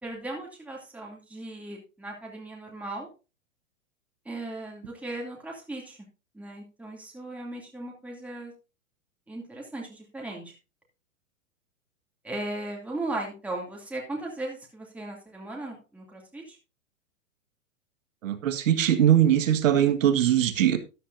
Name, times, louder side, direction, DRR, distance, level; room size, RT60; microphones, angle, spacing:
voice 1, 0.0-3.1 4.2-6.0 6.3-8.5 9.3-10.5 12.2-16.6, right 2 dB, 5° right, 2.7 m, -37 dB
voice 2, 18.2-20.8, right 10 dB, 70° right, 1.7 m, -21 dB
13.5 x 10.0 x 2.7 m
hypercardioid pair, 125°, 40 cm